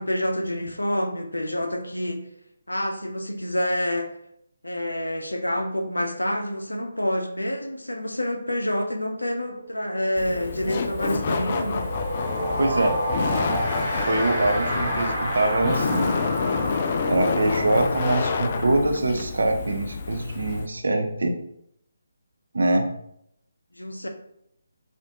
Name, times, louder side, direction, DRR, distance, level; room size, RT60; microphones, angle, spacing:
voice 1, 0.0-2.2 2.7-4.1 4.6-11.9 23.8-24.1, equal, 85° left, 5 dB, 0.6 m, -27 dB
sound 1, 9.5-9.7 10.0-20.5, right 1 dB, ahead, 1.4 m, -31 dB
Laughter, 10.2-20.7, left 5 dB, 40° left, 0.3 m, -28 dB
voice 2, 12.6-12.9 13.9-16.1 17.1-21.3 22.5-22.9, right 2 dB, 65° right, 3 dB, 0.6 m, -23 dB
4.2 x 2.5 x 2.9 m, 0.73 s
figure-of-eight pair, 150°, 0 cm